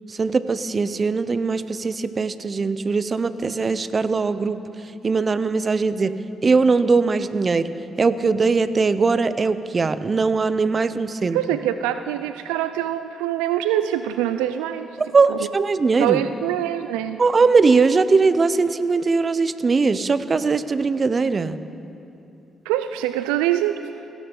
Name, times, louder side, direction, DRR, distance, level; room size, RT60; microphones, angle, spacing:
voice 1, 0.1-4.6 5.0-7.7 8.0-11.4 15.1-16.2 17.2-21.6, right 4 dB, 40° right, 13 dB, 0.7 m, -20 dB
voice 2, 11.2-14.9 15.3-15.5 16.0-17.2 22.7-23.8, right 12 dB, 85° right, 11 dB, 0.3 m, -24 dB
17.0 x 16.5 x 3.9 m, 2.8 s
hypercardioid pair, 45°, 0 cm